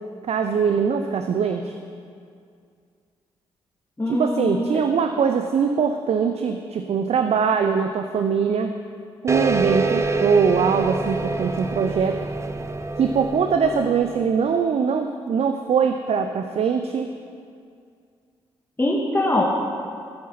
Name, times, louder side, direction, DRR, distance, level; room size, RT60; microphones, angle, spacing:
voice 1, 0.3-1.7 4.1-8.7 9.2-12.2 13.0-17.1, right 6 dB, 60° right, 7 dB, 0.7 m, -22 dB
voice 2, 4.0-4.6 18.8-19.4, left 1 dB, 20° left, -4 dB, 1.9 m, -22 dB
sound 1, 9.3-14.4, right 3 dB, 25° right, 0.9 m, -26 dB
15.0 x 8.5 x 5.9 m, 2.3 s
hypercardioid pair, 45°, 12 cm